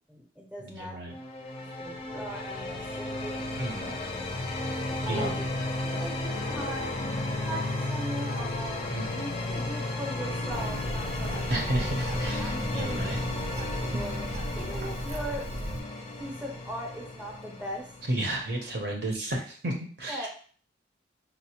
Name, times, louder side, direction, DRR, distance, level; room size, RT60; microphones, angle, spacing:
voice 1, 0.1-1.0 1.6-3.9 4.9-5.4 6.0-7.1 7.4-11.8 12.4-13.1 13.7-14.3 14.5-15.5 16.1-17.9 20.1-20.3, equal, 5° right, -2 dB, 0.6 m, -39 dB
voice 2, 0.6-1.1 3.6-3.9 4.7-4.8 5.1-5.3 8.9-9.2 11.5-13.2 18.1-20.3, right 1 dB, 60° right, 1 dB, 0.7 m, -32 dB
sound 1, 1.1-18.8, left 2 dB, 30° left, 0.5 m, -34 dB
Bird, 10.5-15.8, right 1 dB, 40° right, 0.3 m, -36 dB
4.0 x 2.0 x 2.8 m, 0.43 s
head